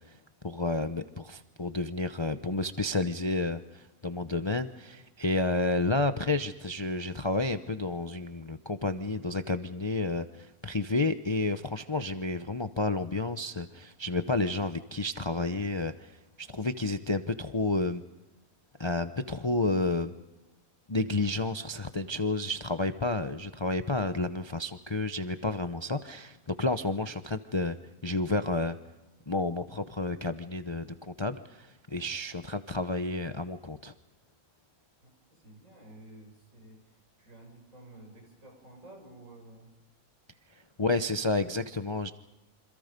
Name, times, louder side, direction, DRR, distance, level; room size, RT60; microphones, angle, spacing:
voice 1, 0.4-18.0 18.8-20.1 20.9-27.8 28.0-28.8 29.3-33.9 40.8-42.1, left 2 dB, 25° left, 9 dB, 0.7 m, -31 dB
voice 2, 35.0-39.7, right 1 dB, 60° right, 2 dB, 7.1 m, -52 dB
28.0 x 26.5 x 5.3 m, 0.99 s
omnidirectional pair, 1.5 m